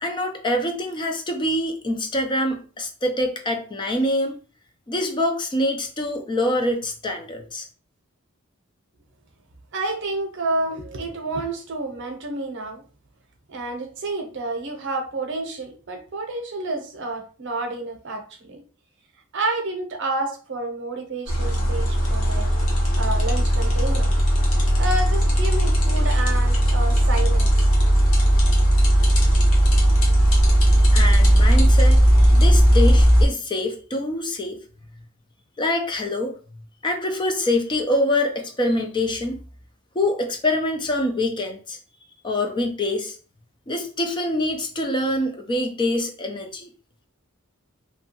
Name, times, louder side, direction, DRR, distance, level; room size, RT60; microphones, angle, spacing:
voice 1, 0.0-4.4 4.9-7.7 30.7-32.0 32.3-34.6 35.6-36.3 36.8-39.4 39.9-41.8 42.2-43.2 43.7-46.7, left 1 dB, 25° left, 4 dB, 0.4 m, -25 dB
voice 2, 9.7-12.8 13.5-18.6 19.3-22.5 22.9-24.1 24.8-27.7, right 2 dB, 60° right, 4 dB, 0.7 m, -29 dB
sound 1, 21.3-33.3, equal, 80° left, 0.9 m, -17 dB
2.8 x 2.2 x 2.8 m, 0.38 s
head